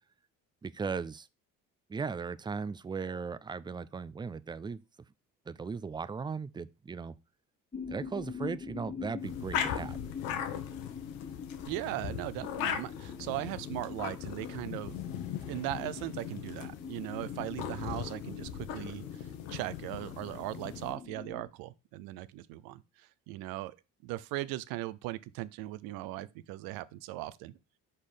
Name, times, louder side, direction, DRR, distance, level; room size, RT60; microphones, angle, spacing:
voice 1, 0.6-1.3 1.9-4.8 5.5-7.1 7.9-10.0, right 5 dB, 15° right, 0.3 m, -37 dB
sound 1, 7.7-21.4, left 6 dB, 15° left, 1.5 m, -44 dB
sound 2, 9.2-20.9, left 9 dB, 90° left, 1.0 m, -39 dB
voice 2, 11.6-15.0 15.5-23.8 24.0-27.6, right 16 dB, 90° right, 0.6 m, -39 dB
5.6 x 4.3 x 5.0 m
cardioid pair, 95°, 34 cm